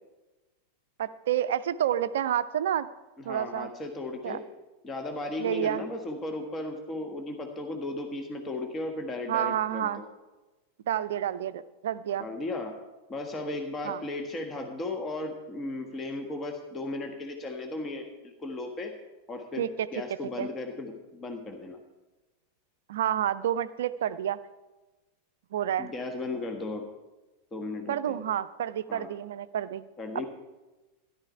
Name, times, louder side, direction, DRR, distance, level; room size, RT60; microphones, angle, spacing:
voice 1, 1.0-2.9 3.2-3.7 4.2-4.4 5.4-5.8 9.3-10.0 10.9-12.3 13.8-14.0 19.6-19.9 20.4-20.5 22.9-24.4 25.5-25.9 27.9-29.8, right 10 dB, 60° right, 15 dB, 0.5 m, -29 dB
voice 2, 3.2-4.4 4.8-10.1 12.2-12.7 13.1-18.9 19.3-21.8 25.8-26.9 27.5-28.2 28.9-29.1 30.0-30.3, left 2 dB, 20° left, 4 dB, 1.4 m, -36 dB
13.0 x 11.0 x 4.6 m, 1.1 s
figure-of-eight pair, 90°, 0 cm